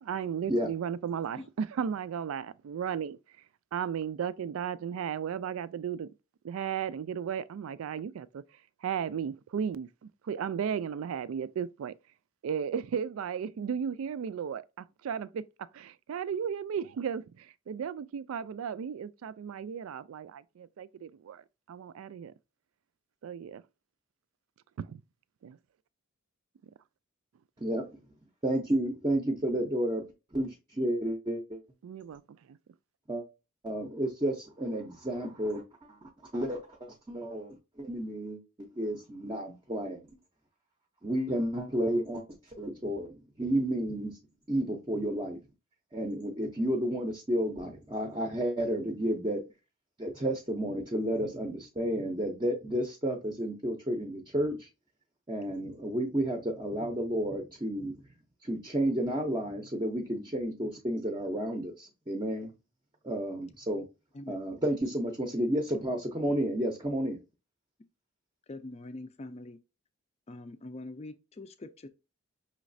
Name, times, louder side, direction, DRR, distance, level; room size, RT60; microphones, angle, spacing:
voice 1, 0.0-3.2 3.7-6.1 6.4-8.4 8.8-11.9 12.4-22.3 23.2-23.6 24.8-25.0 25.4-25.6 31.8-32.2 32.5-32.6, right 7 dB, 75° right, 0.3 m, -35 dB
voice 2, 28.4-30.0 30.3-31.6 33.1-33.2 33.6-36.0 36.3-40.0 41.0-44.2 44.5-45.4 45.9-49.4 50.0-54.7 55.3-57.9 58.4-62.5 63.0-63.8 64.3-67.2, right 1 dB, 20° right, 0.6 m, -31 dB
voice 3, 68.5-69.6 70.3-71.9, left 2 dB, 30° left, 0.4 m, -43 dB
5.6 x 3.1 x 2.6 m
head